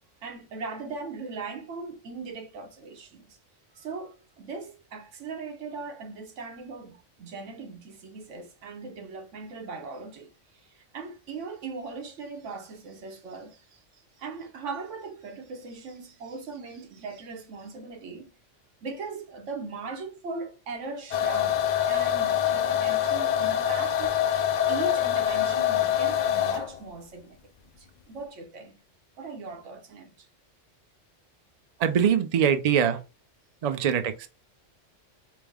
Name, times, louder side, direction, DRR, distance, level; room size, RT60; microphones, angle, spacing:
voice 1, 0.2-3.4 3.7-10.3 10.7-13.8 14.2-18.3 18.8-27.4 27.8-28.8 29.2-30.3, right 4 dB, 80° right, 1.2 m, -39 dB
sound 1, 21.1-26.8, left 10 dB, 70° left, 0.4 m, -25 dB
voice 2, 31.8-33.0 33.6-34.3, right 8 dB, 55° right, 0.4 m, -23 dB
4.7 x 2.0 x 3.5 m
omnidirectional pair, 1.3 m